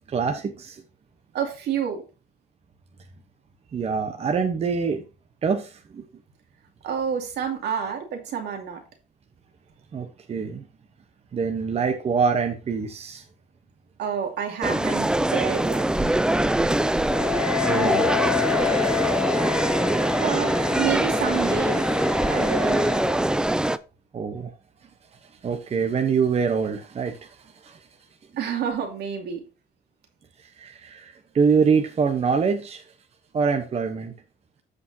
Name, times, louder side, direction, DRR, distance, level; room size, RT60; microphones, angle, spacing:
voice 1, 0.1-0.8 3.7-5.0 5.4-6.0 9.9-10.6 11.3-13.2 17.7-18.1 24.1-24.5 25.4-27.4 27.6-27.8 30.6-32.8 33.3-34.1, right 5 dB, 35° right, 1.0 m, -25 dB
voice 2, 1.3-2.0 6.8-8.8 14.0-16.2 20.2-21.9 22.3-22.8 28.4-29.4, right 7 dB, 65° right, 2.6 m, -29 dB
sound 1, 14.6-23.8, right 1 dB, 5° right, 0.4 m, -23 dB
Wind instrument woodwind instrument, 17.1-23.2, left 18 dB, 80° left, 1.6 m, -30 dB
14.5 x 5.1 x 2.8 m
cardioid pair, 120°, 18 cm